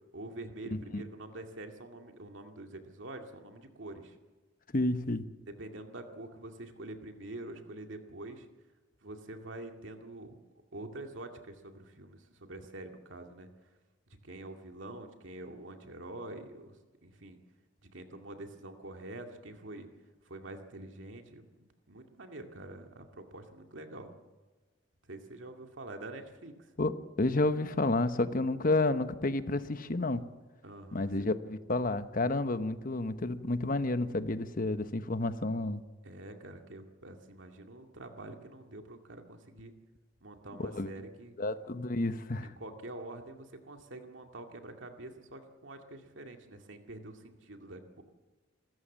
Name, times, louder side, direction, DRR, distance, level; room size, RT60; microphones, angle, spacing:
voice 1, 0.1-4.2 5.6-8.5 9.0-10.3 10.7-13.5 14.2-17.4 17.9-19.9 20.2-21.4 21.9-24.1 25.1-26.7 30.6-31.3 36.0-39.7 40.2-41.3 42.4-48.0, right 2 dB, 80° right, 4 dB, 2.3 m, -46 dB
voice 2, 4.7-5.2 26.8-30.3 30.9-35.8 40.6-40.9 41.4-42.5, left 2 dB, 45° left, 11 dB, 1.0 m, -30 dB
27.5 x 14.0 x 7.4 m, 1.3 s
head